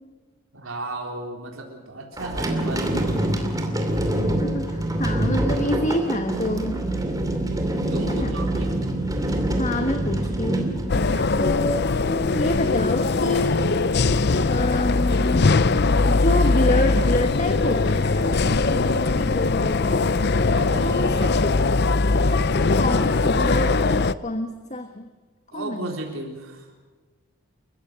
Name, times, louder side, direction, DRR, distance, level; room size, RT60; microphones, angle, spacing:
voice 1, 0.5-3.2 7.9-8.7 10.9-11.3 20.5-21.3 25.5-26.7, right 2 dB, 70° right, 1 dB, 3.8 m, -35 dB
sound 1, 2.2-11.6, right 1 dB, 15° right, 2.6 m, -25 dB
voice 2, 4.1-6.8 8.1-8.4 9.6-10.7 11.4-13.7 14.4-15.5 16.0-20.1 20.7-21.4 22.3-25.1 25.5-25.9, left 1 dB, 35° left, 6 dB, 1.3 m, -27 dB
sound 2, 10.9-24.1, left 3 dB, 50° left, 0.6 m, -21 dB
29.0 x 15.5 x 7.5 m, 1.3 s
head